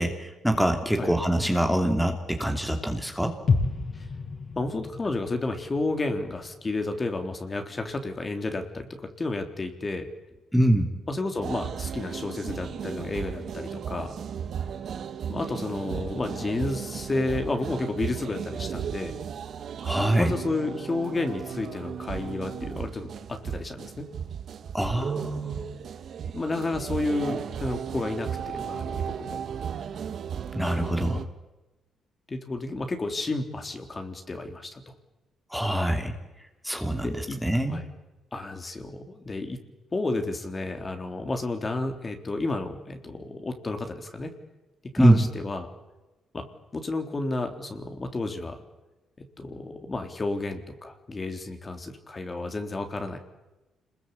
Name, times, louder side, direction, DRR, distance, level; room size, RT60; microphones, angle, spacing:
voice 1, 0.0-3.4 10.5-10.9 19.8-20.3 24.7-25.6 30.5-31.2 35.5-36.1 36.6-37.8 45.0-45.3, right 1 dB, ahead, 4 dB, 2.9 m, -24 dB
sound 1, 3.5-7.4 7.7-7.8, left 4 dB, 45° left, 6.4 m, -31 dB
voice 2, 4.6-10.1 11.1-14.2 15.3-19.2 20.2-24.1 26.3-29.4 32.3-34.8 37.0-37.4 37.7-37.9 38.3-39.6 39.9-44.3 44.9-45.7 46.3-46.5 46.7-48.6 49.2-53.2, left 2 dB, 30° left, 5 dB, 3.6 m, -31 dB
sound 2, 11.3-31.2, right 8 dB, 60° right, 1.8 m, -35 dB
27.5 x 21.0 x 8.6 m, 1.1 s
cardioid pair, 90°, 0 cm